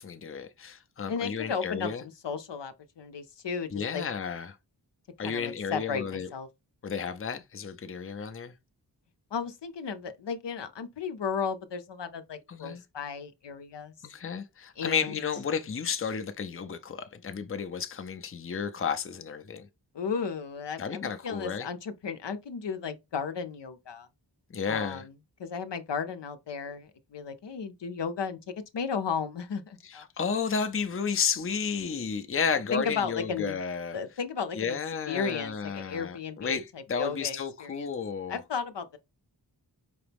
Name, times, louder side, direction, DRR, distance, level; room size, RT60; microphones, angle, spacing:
voice 1, 0.0-2.0 3.7-4.6 5.2-6.3 6.8-8.5 12.5-12.8 14.0-19.7 20.8-21.7 24.5-25.0 29.8-34.0 34.5-38.4, left 6 dB, 30° left, 0.6 m, -32 dB
voice 2, 1.1-4.0 5.2-6.5 9.3-13.9 14.8-15.2 19.9-24.1 24.7-25.1 25.4-28.4 28.7-30.0 32.7-33.6 33.9-34.8 35.1-37.9 38.3-39.0, left 6 dB, 70° left, 0.7 m, -34 dB
4.9 x 2.9 x 3.4 m
wide cardioid pair, 80°, 44 cm